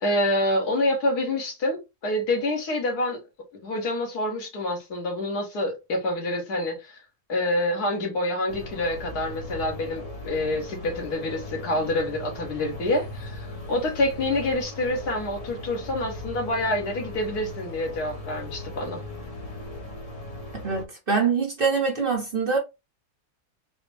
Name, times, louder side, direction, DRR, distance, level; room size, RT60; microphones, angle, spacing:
voice 1, 0.0-3.2 3.6-7.0 7.3-19.0, left 1 dB, 80° left, 1.7 m, -27 dB
sound 1, 8.5-20.8, left 1 dB, 35° left, 0.6 m, -38 dB
voice 2, 20.6-22.6, right 5 dB, 45° right, 0.9 m, -24 dB
4.1 x 2.1 x 3.2 m
omnidirectional pair, 1.7 m